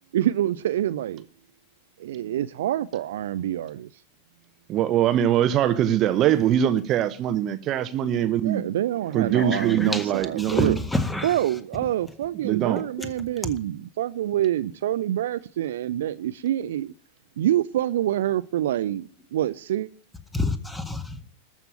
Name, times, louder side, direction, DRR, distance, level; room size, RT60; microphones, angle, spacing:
voice 1, 0.1-1.3 2.0-3.9 8.4-10.8 11.2-16.9 17.4-19.9, right 12 dB, 60° right, 0.5 m, -26 dB
voice 2, 4.7-8.6 9.1-10.8 12.4-12.8, right 10 dB, 35° right, 0.9 m, -22 dB
voice 3, 9.5-10.0 10.5-11.3 20.3-21.0, left 2 dB, 5° left, 1.7 m, -27 dB
13.5 x 6.0 x 8.9 m
figure-of-eight pair, 90°, 0 cm